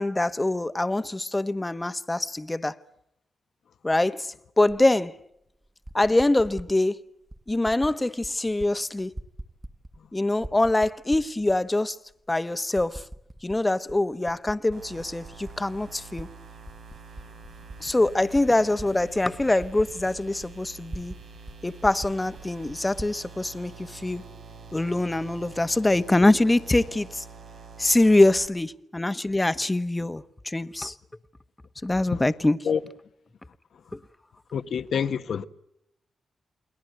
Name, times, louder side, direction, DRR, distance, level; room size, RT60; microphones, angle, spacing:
voice 1, 0.0-2.8 3.8-5.2 5.9-7.1 7.5-9.1 10.1-12.0 12.3-13.0 13.4-16.3 17.8-21.1 21.6-24.2 24.7-27.2 27.8-30.9 31.8-32.6 33.9-34.0, left 2 dB, 20° left, 1.3 m, -24 dB
Typing, 4.7-4.8 5.6-6.7 7.3-7.9 8.2-8.7 9.0-10.1 10.4-11.6 12.1-12.2 12.8-13.6 13.9-16.3 16.6-21.2 21.5-21.6 21.8-23.2, right 1 dB, 15° right, 1.7 m, -41 dB
sound 1, 14.7-28.5, right 4 dB, 90° right, 5.4 m, -46 dB
voice 2, 34.5-35.4, left 7 dB, 75° left, 1.4 m, -27 dB
29.0 x 21.5 x 8.1 m
cardioid pair, 75°, 0 cm